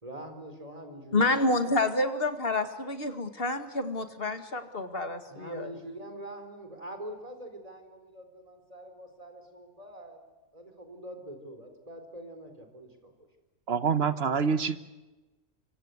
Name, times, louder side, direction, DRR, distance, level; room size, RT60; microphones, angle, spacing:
voice 1, 0.0-1.7 5.3-10.2 10.5-13.1, right 1 dB, 30° right, 6 dB, 4.5 m, -44 dB
voice 2, 1.1-5.7, left 2 dB, 45° left, 8 dB, 2.3 m, -28 dB
voice 3, 13.7-14.8, right 6 dB, 50° right, 12 dB, 1.4 m, -26 dB
25.5 x 25.0 x 8.1 m, 1.1 s
omnidirectional pair, 1.4 m